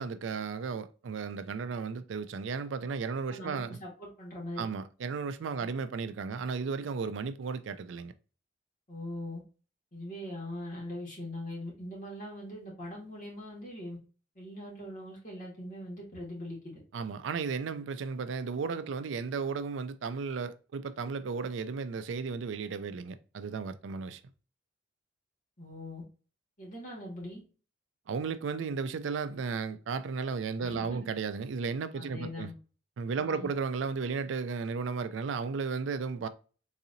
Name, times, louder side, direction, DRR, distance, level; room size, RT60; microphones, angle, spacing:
voice 1, 0.0-3.8 4.6-8.1 16.9-24.2 28.1-32.5 33.0-36.3, right 5 dB, 80° right, 0.4 m, -34 dB
voice 2, 3.3-4.7 8.9-9.4 9.9-14.0 14.3-16.8 25.6-26.0 26.6-27.4 30.6-31.1 31.9-32.5 33.2-33.5, left 1 dB, 45° left, 1.5 m, -41 dB
4.0 x 2.8 x 2.5 m
head